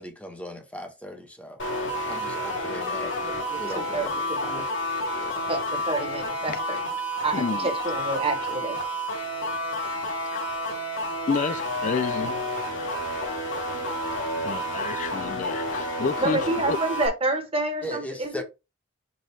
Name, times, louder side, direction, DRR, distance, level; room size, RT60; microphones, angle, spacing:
voice 1, 0.0-1.6 2.0-4.7 5.2-5.5 17.8-18.4, equal, 5° left, 1.0 m, -38 dB
sound 1, 1.6-17.1, equal, 75° left, 2.3 m, -30 dB
voice 2, 2.9-4.6 5.5-6.8 7.2-8.8 16.2-18.4, right 2 dB, 30° right, 1.3 m, -29 dB
voice 3, 7.3-7.7 10.3-10.5 11.0-12.4 14.4-16.8, left 5 dB, 40° left, 0.3 m, -30 dB
5.3 x 3.9 x 4.5 m
head